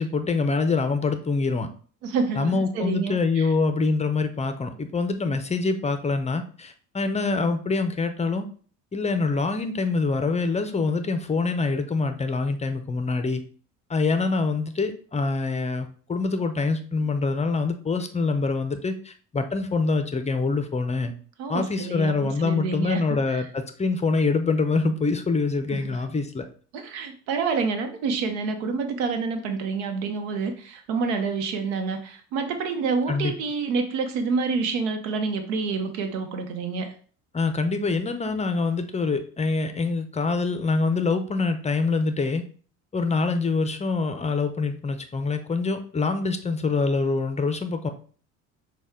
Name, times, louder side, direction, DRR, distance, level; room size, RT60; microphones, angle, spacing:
voice 1, 0.0-1.7 2.3-8.5 8.9-13.4 13.9-21.1 21.5-26.5 33.1-33.3 37.3-42.4 42.9-47.9, left 4 dB, 20° left, 8 dB, 0.6 m, -25 dB
voice 2, 2.0-3.5 21.4-23.4 25.7-25.9 26.7-36.9, right 4 dB, 85° right, 7 dB, 0.8 m, -28 dB
6.2 x 2.3 x 3.5 m, 0.43 s
supercardioid pair, 80°, 34 cm